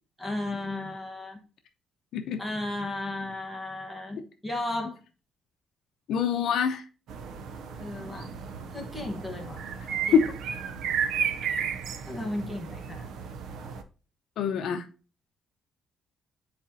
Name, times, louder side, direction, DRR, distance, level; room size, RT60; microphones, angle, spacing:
voice 1, 0.2-1.4 2.4-5.0 7.8-8.3 8.7-9.7 10.1-10.2 12.1-13.1, left 2 dB, ahead, 1.1 m, -34 dB
voice 2, 6.1-6.8 10.1-10.3 14.4-14.8, left 7 dB, 65° left, 0.7 m, -25 dB
sound 1, 7.1-13.8, right 7 dB, 65° right, 0.7 m, -33 dB
9.8 x 4.2 x 2.7 m
cardioid pair, 180°, 0 cm